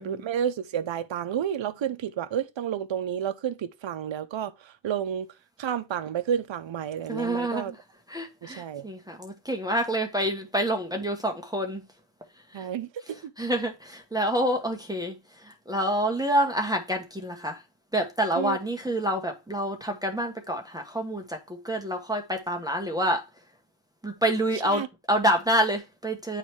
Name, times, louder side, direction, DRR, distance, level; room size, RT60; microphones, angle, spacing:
voice 1, 0.0-5.3 5.6-7.7 8.4-8.9 12.5-13.3 18.4-18.6 24.6-24.9, right 9 dB, 70° right, 0.7 m, -31 dB
voice 2, 7.1-7.7 8.1-11.8 12.5-12.7 13.4-17.6 17.9-23.2 24.0-26.4, right 1 dB, 10° right, 1.1 m, -27 dB
8.8 x 3.3 x 4.6 m
wide cardioid pair, 90°, 47 cm